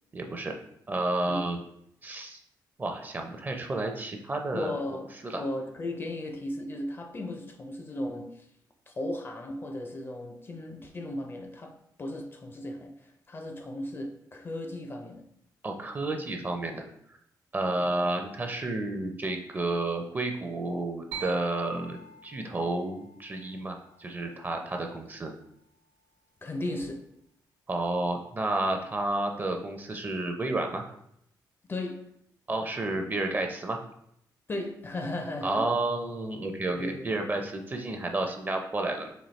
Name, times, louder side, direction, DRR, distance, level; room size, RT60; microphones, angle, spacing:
voice 1, 0.1-0.5 0.9-1.6 2.0-2.4 2.8-4.8 5.2-5.4 15.6-16.9 17.5-25.3 27.7-30.8 32.5-33.8 35.4-39.1, right 2 dB, 25° right, 0.5 m, -31 dB
voice 2, 4.5-8.5 8.9-15.2 17.6-17.7 26.4-27.1 31.7-32.0 34.5-35.7 36.8-37.1, left 1 dB, 30° left, 0.4 m, -36 dB
sound 1, 21.1-24.8, right 5 dB, 85° right, 0.8 m, -45 dB
4.1 x 2.7 x 3.1 m
cardioid pair, 105°, 8 cm